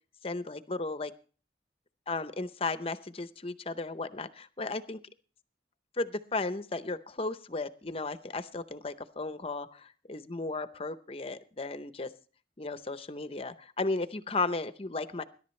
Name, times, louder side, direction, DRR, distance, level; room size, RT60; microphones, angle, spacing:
voice 1, 0.2-1.1 2.1-5.0 6.0-12.1 12.6-15.2, left 3 dB, 35° left, 12 dB, 0.7 m, -35 dB
21.0 x 11.0 x 3.2 m, 0.40 s
head